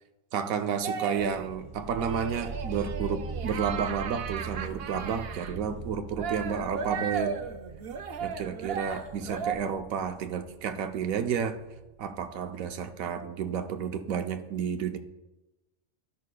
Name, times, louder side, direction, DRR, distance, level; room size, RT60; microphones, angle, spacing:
voice 1, 0.3-7.3 8.2-11.6 12.0-15.0, right 7 dB, 85° right, 6 dB, 1.1 m, -31 dB
sound 1, 0.8-1.5 2.0-5.5 6.2-9.6, right 6 dB, 60° right, 0.7 m, -35 dB
sound 2, 1.2-12.6, right 4 dB, 25° right, 0.8 m, -42 dB
13.0 x 5.7 x 2.2 m, 1.0 s
omnidirectional pair, 1.4 m